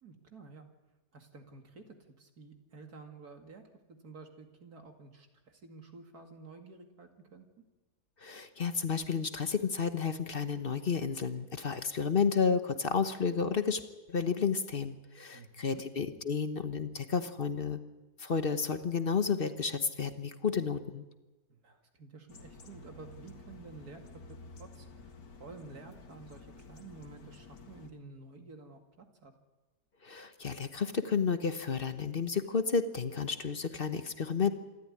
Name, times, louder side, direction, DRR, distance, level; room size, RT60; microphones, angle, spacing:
voice 1, 0.0-0.7 1.1-3.6 3.9-7.5 15.3-15.8 21.5-24.2 24.6-25.1 25.4-29.3, right 3 dB, 60° right, 4 dB, 2.7 m, -51 dB
voice 2, 8.2-13.8 14.1-17.8 18.2-21.0 30.0-34.5, left 5 dB, 40° left, 9 dB, 1.1 m, -31 dB
sound 1, 22.3-27.9, left 3 dB, 80° left, 2.4 m, -51 dB
27.0 x 13.0 x 9.8 m, 1.1 s
omnidirectional pair, 1.8 m